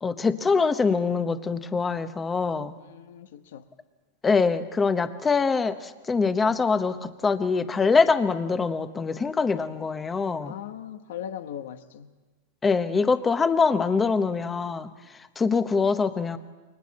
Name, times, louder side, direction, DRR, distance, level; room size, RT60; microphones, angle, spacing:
voice 1, 0.0-2.7 4.2-10.5 12.6-14.9 15.4-16.4, left 4 dB, 15° left, 10 dB, 1.0 m, -24 dB
voice 2, 2.8-3.7 10.4-12.1, left 10 dB, 75° left, 9 dB, 1.3 m, -39 dB
29.5 x 23.5 x 4.3 m, 1.2 s
supercardioid pair, 145°, 0 cm